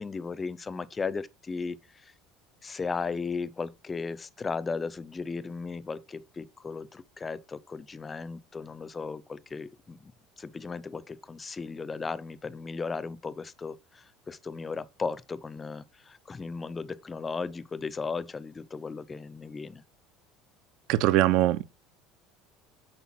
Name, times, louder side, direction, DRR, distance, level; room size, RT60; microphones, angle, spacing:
voice 1, 0.0-2.1 2.6-10.1 10.4-19.8, left 4 dB, 20° left, 0.6 m, -36 dB
voice 2, 20.9-21.6, right 15 dB, 60° right, 0.8 m, -22 dB
8.4 x 6.6 x 6.0 m
cardioid pair, 150°, 0 cm